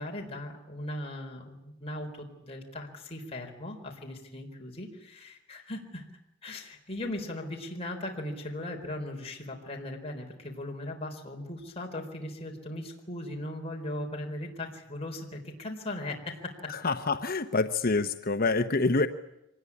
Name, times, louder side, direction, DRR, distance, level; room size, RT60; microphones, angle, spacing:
voice 1, 0.0-6.1 6.4-16.7, left 1 dB, 30° left, 1 dB, 4.1 m, -38 dB
voice 2, 16.7-19.1, left 3 dB, 45° left, 8 dB, 1.0 m, -26 dB
25.0 x 19.5 x 9.8 m, 0.88 s
head